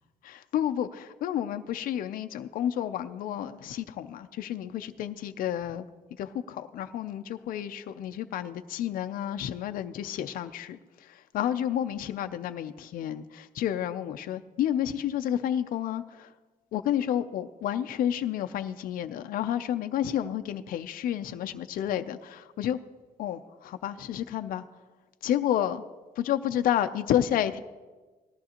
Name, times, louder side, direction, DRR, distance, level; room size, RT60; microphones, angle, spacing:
voice 1, 0.2-5.9 6.2-16.3 16.7-22.8 23.2-24.6 25.2-25.8 26.2-27.6, left 10 dB, 65° left, 8 dB, 0.5 m, -30 dB
18.5 x 14.0 x 2.9 m, 1.3 s
cardioid pair, 180°, 15 cm